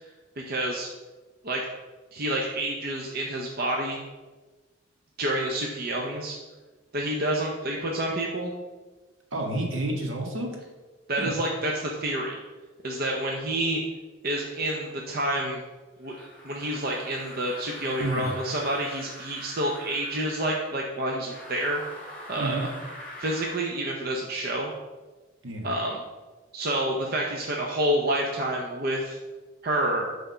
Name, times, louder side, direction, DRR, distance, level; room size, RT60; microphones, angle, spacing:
voice 1, 0.5-0.9 1.4-1.6 2.1-4.0 5.2-6.3 6.9-8.5 11.1-12.4 12.8-13.8 14.2-15.6 16.0-21.8 22.3-22.7 23.2-24.7 25.6-26.0 26.5-29.2 29.6-30.1, right 1 dB, 50° right, -1 dB, 0.7 m, -28 dB
voice 2, 9.3-10.6 11.2-11.3 18.0-18.3 22.3-22.7 25.4-25.7, right 1 dB, 75° right, 1 dB, 1.4 m, -30 dB
sound 1, 16.0-20.7 21.2-23.7, left 1 dB, 5° left, 1.9 m, -43 dB
7.6 x 3.5 x 5.5 m, 1.2 s
head